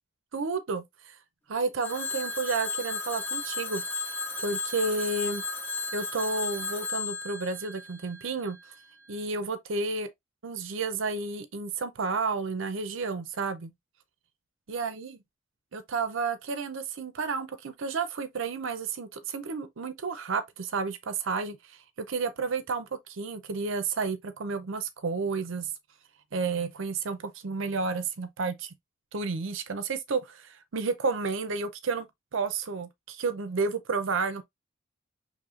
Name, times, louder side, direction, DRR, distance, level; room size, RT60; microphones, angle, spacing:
voice 1, 0.3-1.2 1.5-3.8 4.4-5.4 5.9-8.6 9.1-10.1 10.4-13.7 14.7-15.2 15.7-25.7 26.3-28.7 29.1-32.1 32.3-34.4, right 4 dB, 65° right, 0.6 m, -31 dB
Telephone, 1.8-8.6, left 3 dB, 10° left, 1.3 m, -34 dB
6.4 x 3.1 x 2.4 m
head